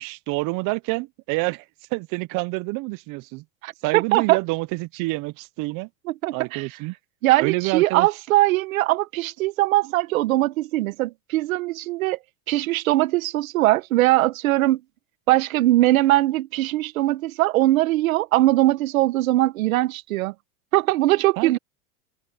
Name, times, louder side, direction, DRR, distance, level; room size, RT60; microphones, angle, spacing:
voice 1, 0.0-1.6 1.9-3.4 3.8-5.9 6.3-6.9 7.4-8.1 21.4-21.6, right 24 dB, 50° right, 0.7 m, -27 dB
voice 2, 3.6-4.4 6.1-6.7 7.2-12.2 12.5-14.8 15.3-20.3 20.7-21.6, right 17 dB, 90° right, 1.1 m, -21 dB
supercardioid pair, 115°, 40 cm